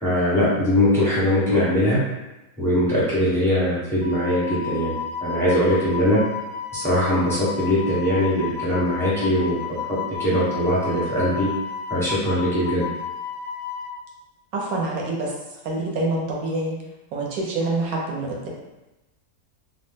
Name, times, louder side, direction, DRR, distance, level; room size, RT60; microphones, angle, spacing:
voice 1, 0.0-2.0 2.6-4.9 5.2-6.2 6.7-9.6 10.2-11.5 11.9-12.8, equal, 5° left, -9 dB, 0.4 m, -21 dB
Wind instrument woodwind instrument, 4.0-13.9, left 7 dB, 70° left, 0.8 m, -32 dB
voice 2, 14.5-15.3 15.6-16.8 17.1-18.5, right 2 dB, 70° right, -2 dB, 1.0 m, -26 dB
2.7 x 2.1 x 3.4 m, 1.0 s
omnidirectional pair, 1.8 m